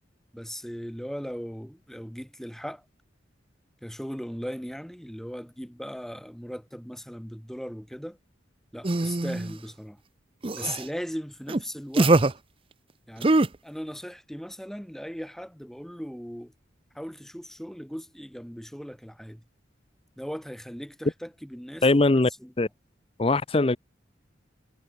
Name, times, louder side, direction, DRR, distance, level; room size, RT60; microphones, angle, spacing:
voice 1, 0.3-2.8 3.8-8.2 8.7-10.0 10.5-12.2 13.1-16.5 16.9-19.4 20.2-22.5, equal, ahead, 3.8 m, -38 dB
sound 1, 8.8-9.5 10.4-10.8 11.5-11.6 11.9-12.3 13.2-13.5, right 2 dB, 30° right, 0.7 m, -22 dB
voice 2, 21.8-22.3 22.6-22.7 23.2-23.8, left 2 dB, 30° left, 0.6 m, -21 dB
head